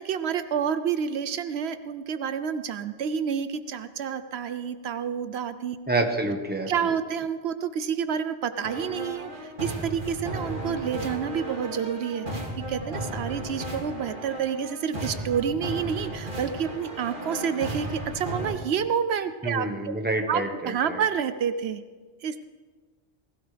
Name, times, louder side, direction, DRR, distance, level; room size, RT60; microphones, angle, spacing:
voice 1, 0.0-5.8 6.7-19.9 20.3-21.8 22.2-22.4, right 7 dB, 80° right, 11 dB, 0.9 m, -29 dB
voice 2, 5.9-6.7 19.4-21.0, right 2 dB, 10° right, 3 dB, 1.3 m, -28 dB
sound 1, 8.6-18.5, right 1 dB, 50° right, 2.8 m, -35 dB
20.5 x 16.0 x 3.4 m, 1.4 s
omnidirectional pair, 1.1 m